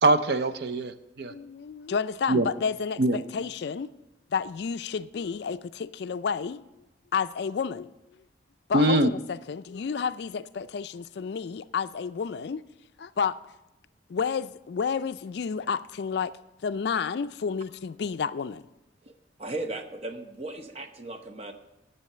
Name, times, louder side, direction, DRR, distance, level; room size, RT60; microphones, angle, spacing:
voice 1, 0.0-1.3 2.3-2.5 3.0-3.2 8.7-9.1, right 2 dB, 55° right, 0.5 m, -22 dB
voice 2, 1.3-3.9 4.3-6.6 7.1-7.9 8.7-12.6 13.0-13.4 14.1-16.3 16.6-18.6, left 6 dB, 60° left, 0.3 m, -30 dB
voice 3, 19.4-21.5, right 2 dB, 30° right, 0.9 m, -36 dB
10.5 x 6.9 x 6.7 m
head